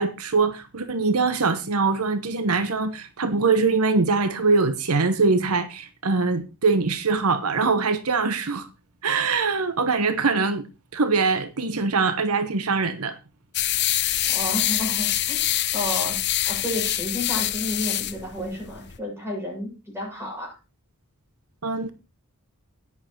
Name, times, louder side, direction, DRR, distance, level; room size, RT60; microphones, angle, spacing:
voice 1, 0.0-8.7 9.0-10.6 10.9-13.2 21.6-21.9, right 4 dB, 80° right, 1.0 m, -23 dB
sound 1, 13.5-19.0, left 13 dB, 50° left, 0.8 m, -25 dB
voice 2, 14.2-16.2 16.4-20.6, left 1 dB, 10° right, 6.8 m, -31 dB
11.0 x 9.7 x 4.4 m
head